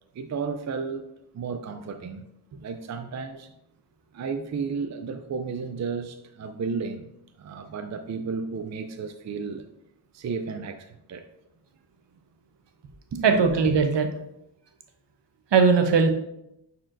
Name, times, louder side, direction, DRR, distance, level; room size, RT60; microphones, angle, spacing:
voice 1, 0.1-1.1 1.3-2.2 2.6-3.5 4.1-7.1 7.4-9.7 10.1-11.3 13.1-13.3, right 5 dB, 40° right, 0.4 m, -33 dB
voice 2, 13.2-14.1 15.5-16.1, right 5 dB, 65° right, 0.9 m, -19 dB
9.9 x 4.3 x 2.6 m
wide cardioid pair, 115°, 46 cm